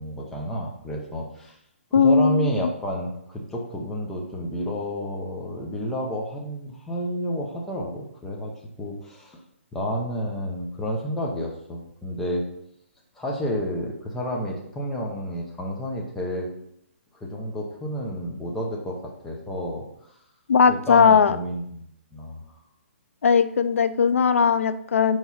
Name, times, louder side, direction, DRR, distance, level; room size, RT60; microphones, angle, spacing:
voice 1, 0.0-1.5 2.0-8.5 8.8-9.4 9.7-12.4 13.2-16.5 17.2-20.1 20.7-22.4, equal, 5° left, -2 dB, 0.7 m, -30 dB
voice 2, 1.9-2.5 20.5-21.4 23.2-25.2, left 6 dB, 85° left, 13 dB, 0.4 m, -18 dB
4.7 x 4.6 x 5.5 m, 0.73 s
hypercardioid pair, 170°, 7 cm